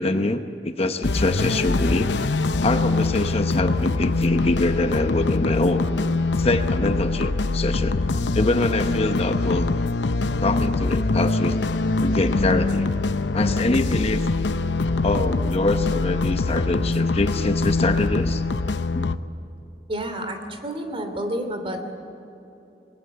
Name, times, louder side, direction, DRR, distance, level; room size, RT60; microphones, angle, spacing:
voice 1, 0.0-2.1 2.6-5.9 6.4-8.0 8.3-9.7 10.4-11.6 12.0-12.9 13.3-14.3 15.0-18.4 18.9-19.1, left 2 dB, 35° left, 8 dB, 0.9 m, -24 dB
sound 1, 1.0-19.2, left 3 dB, 80° left, 0.8 m, -23 dB
voice 2, 19.9-21.8, right 1 dB, 30° right, 6 dB, 2.7 m, -29 dB
27.0 x 20.5 x 7.9 m, 2.9 s
head